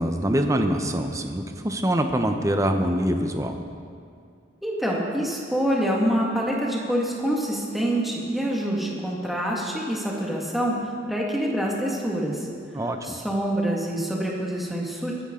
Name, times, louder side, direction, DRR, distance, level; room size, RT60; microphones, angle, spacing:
voice 1, 0.0-3.6 12.7-13.2, equal, 15° right, 5 dB, 0.8 m, -24 dB
voice 2, 4.6-10.8 11.1-12.5 13.0-15.2, right 1 dB, ahead, -3 dB, 1.9 m, -26 dB
23.0 x 10.0 x 3.8 m, 2.3 s
head